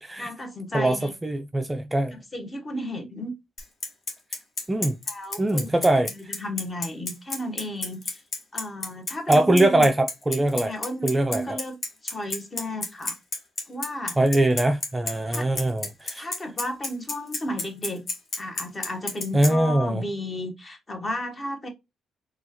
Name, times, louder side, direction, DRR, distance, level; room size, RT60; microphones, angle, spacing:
voice 1, 0.2-1.1 2.1-3.3 5.1-5.7 6.4-8.2 8.5-9.9 10.5-11.8 12.0-13.2 13.7-14.2 15.3-15.5 16.2-18.1 18.4-21.7, left 1 dB, 25° left, 1.0 m, -33 dB
voice 2, 0.7-2.2 4.7-5.0 5.4-6.1 9.3-10.7 11.0-11.6 14.2-16.3 19.3-20.0, right 1 dB, 15° right, 0.4 m, -22 dB
Bicycle, 3.6-19.5, left 3 dB, 45° left, 1.3 m, -30 dB
4.3 x 2.3 x 2.8 m
cardioid pair, 90°, 0 cm